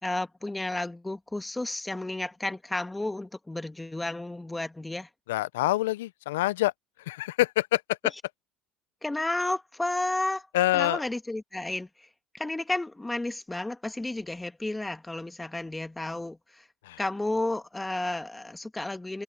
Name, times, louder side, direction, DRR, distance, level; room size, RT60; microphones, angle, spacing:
voice 1, 0.0-5.1 9.0-10.5 10.7-12.1 12.3-16.7 17.0-19.2, left 2 dB, 10° left, 1.9 m, -32 dB
voice 2, 5.3-6.7 7.1-8.1 10.5-11.0 16.8-17.0, left 17 dB, 80° left, 0.5 m, -26 dB
hypercardioid pair, 70°, 0 cm